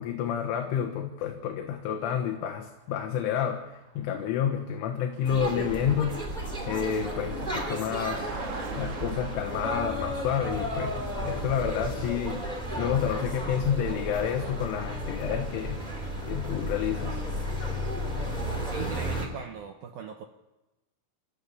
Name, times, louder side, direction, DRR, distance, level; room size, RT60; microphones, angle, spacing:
voice 1, 0.0-6.3 6.7-8.3 8.8-12.4 12.8-15.8 16.3-17.2, left 9 dB, 75° left, 4 dB, 3.8 m, -29 dB
Car passing by, 1.7-17.7, right 3 dB, 60° right, 1.6 m, -48 dB
sound 1, 5.2-19.3, equal, 10° right, 2.4 m, -33 dB
voice 2, 18.6-20.3, right 6 dB, 80° right, 4 dB, 2.1 m, -40 dB
29.5 x 13.5 x 7.2 m, 1.0 s
omnidirectional pair, 5.9 m